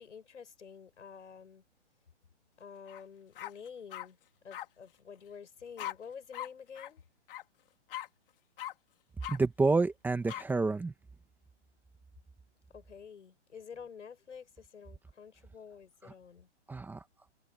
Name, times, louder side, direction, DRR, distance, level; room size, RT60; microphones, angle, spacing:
voice 1, 0.0-1.6 2.6-4.2 4.4-7.0 12.7-16.5, left 6 dB, 90° left, 7.7 m, -49 dB
sound 1, 2.9-3.0 3.4-4.1 4.5-4.7 5.8-5.9 6.3-6.5 6.7-6.9 7.3-7.4 7.9-8.1 8.6-8.7 9.2-9.4 10.3-10.4, left 13 dB, 50° left, 4.2 m, -40 dB
voice 2, 9.3-10.9 16.7-17.0, right 3 dB, 5° right, 1.7 m, -29 dB
hypercardioid pair, 150°, 35 cm